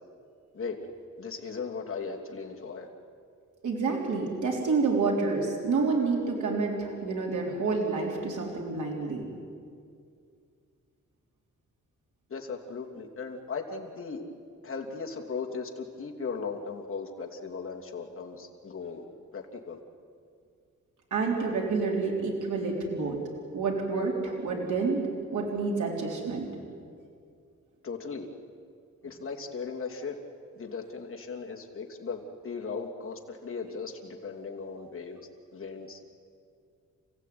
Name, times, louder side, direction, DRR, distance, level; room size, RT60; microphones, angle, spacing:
voice 1, 1.2-2.9 12.3-14.2 14.6-19.0 19.3-19.8 27.8-28.3 29.0-30.2 30.5-35.2 35.5-36.0, left 5 dB, 45° left, 0 dB, 2.9 m, -37 dB
voice 2, 3.6-9.2 21.1-23.2 23.5-25.0 25.3-26.5, right 4 dB, 75° right, -1 dB, 3.9 m, -28 dB
29.5 x 16.0 x 9.5 m, 2.3 s
wide cardioid pair, 135°, 30 cm